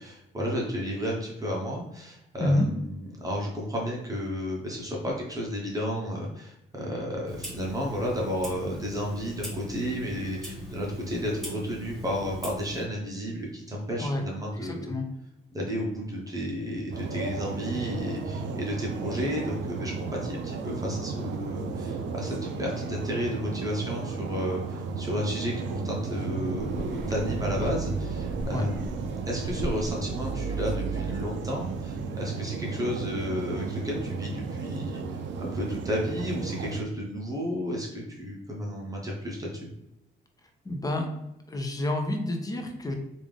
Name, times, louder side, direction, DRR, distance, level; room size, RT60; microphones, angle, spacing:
voice 1, 0.0-14.9 15.5-39.7, equal, 15° right, -3 dB, 0.9 m, -32 dB
Clock, 7.3-12.9, equal, ahead, 1.1 m, -39 dB
voice 2, 14.6-15.1 28.5-28.6 40.6-41.1 41.5-42.9, left 1 dB, 20° left, 4 dB, 0.6 m, -28 dB
sound 1, 16.9-36.8, right 4 dB, 70° right, 0.5 m, -34 dB
sound 2, 26.6-32.1, right 3 dB, 40° left, 1.0 m, -36 dB
3.4 x 2.6 x 3.5 m, 0.85 s
cardioid pair, 90°, 20 cm